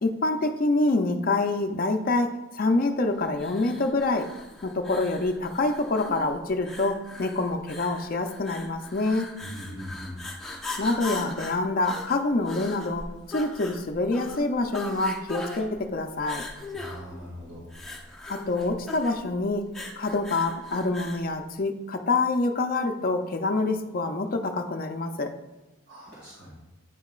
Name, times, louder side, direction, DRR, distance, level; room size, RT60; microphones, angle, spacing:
voice 1, 0.0-4.3 4.6-9.3 10.8-16.5 18.3-19.7 20.0-25.3, left 2 dB, 40° left, 5 dB, 0.5 m, -26 dB
sound 1, 3.4-21.3, left 2 dB, ahead, 0.8 m, -39 dB
voice 2, 9.4-10.2 16.8-17.6 25.9-26.5, equal, 55° right, -7 dB, 1.9 m, -40 dB
9.0 x 5.7 x 2.4 m, 1.0 s
head